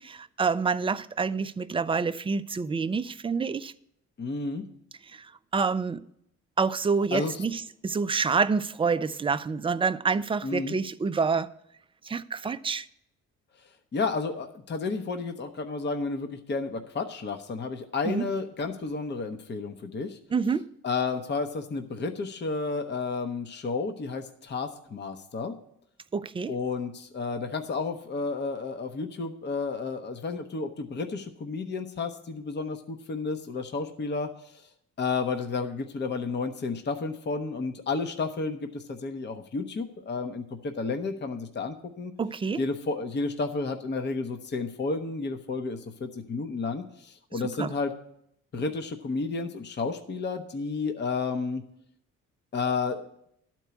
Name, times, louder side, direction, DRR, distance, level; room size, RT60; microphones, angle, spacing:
voice 1, 0.0-3.7 5.1-6.0 6.6-11.5 12.0-12.9 18.1-18.2 20.3-20.7 26.1-26.5 42.2-42.6 47.6-47.7, right 5 dB, 20° right, 0.4 m, -27 dB
voice 2, 4.2-4.7 7.1-7.4 10.4-10.8 13.9-20.2 20.8-25.5 26.5-34.7 35.0-42.1 42.6-47.9 48.5-51.6 52.5-53.1, left 4 dB, 35° left, 0.8 m, -31 dB
12.0 x 4.5 x 8.2 m
cardioid pair, 90°, 30 cm